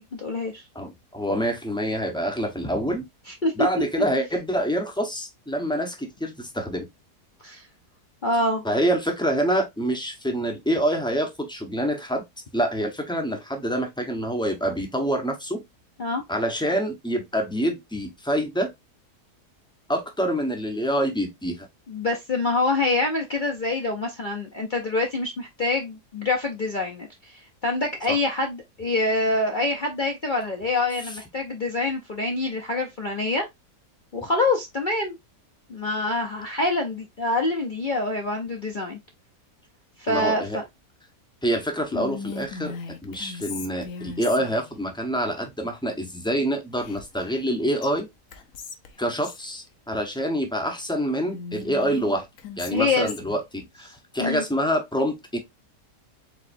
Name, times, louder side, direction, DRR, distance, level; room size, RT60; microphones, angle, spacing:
voice 1, 0.0-0.6 3.3-3.8 7.4-7.7 8.2-8.6 16.0-16.2 21.9-33.5 34.1-35.2 35.7-39.0 40.0-40.6 52.7-53.1 54.2-54.4, left 2 dB, 45° left, 0.7 m, -26 dB
voice 2, 0.7-3.0 3.6-6.9 8.6-12.2 12.5-15.6 16.3-18.7 19.9-21.7 28.1-28.2 40.1-40.6 41.4-42.7 43.0-48.1 49.0-52.3 52.6-55.4, equal, 5° left, 0.7 m, -26 dB
Whispering, 41.9-44.7 46.8-47.5 47.8-47.9 48.3-49.5 51.3-53.4, left 5 dB, 60° left, 1.2 m, -38 dB
4.8 x 3.9 x 2.6 m
omnidirectional pair, 1.8 m